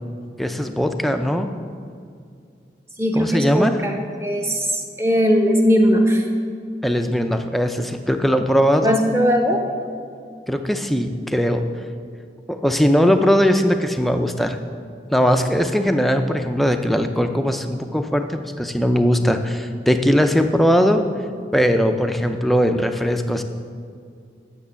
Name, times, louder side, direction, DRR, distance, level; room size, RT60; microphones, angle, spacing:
voice 1, 0.4-1.5 3.1-3.8 6.8-9.0 10.5-11.7 12.5-14.6 15.1-21.0 21.5-23.4, equal, ahead, 6 dB, 0.4 m, -19 dB
voice 2, 3.0-3.9 4.2-6.3 8.8-9.6, equal, 15° right, 2 dB, 1.0 m, -19 dB
9.7 x 6.9 x 6.9 m, 2.3 s
head